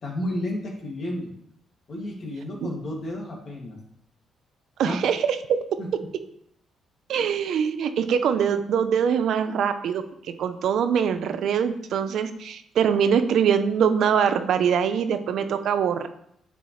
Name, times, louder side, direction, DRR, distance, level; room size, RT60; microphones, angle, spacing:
voice 1, 0.0-1.3 1.9-3.8 4.8-5.0 5.8-5.9, left 1 dB, 50° left, -1 dB, 2.2 m, -32 dB
voice 2, 4.8-5.6 7.1-10.0 10.4-16.1, right 7 dB, 70° right, 9 dB, 0.6 m, -23 dB
8.4 x 5.4 x 3.2 m, 0.71 s
cardioid pair, 90°, 0 cm